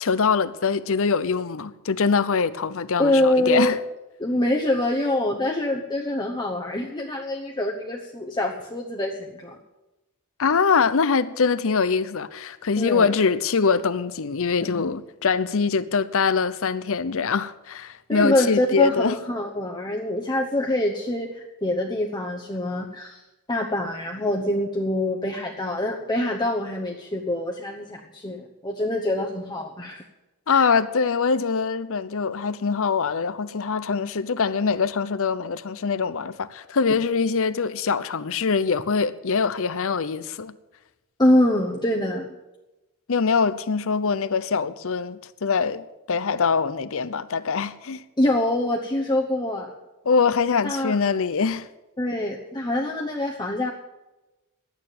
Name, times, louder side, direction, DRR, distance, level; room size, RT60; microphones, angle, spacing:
voice 1, 0.0-3.8 10.4-19.2 30.5-40.5 43.1-48.0 50.1-51.7, left 5 dB, 65° left, 0.7 m, -23 dB
voice 2, 3.0-3.8 4.2-9.6 12.8-13.1 14.7-14.9 18.1-23.2 23.5-30.0 30.5-30.7 41.2-42.3 48.2-49.7 50.6-51.0 52.0-53.7, left 1 dB, 20° left, 1.0 m, -25 dB
11.5 x 9.1 x 9.1 m
head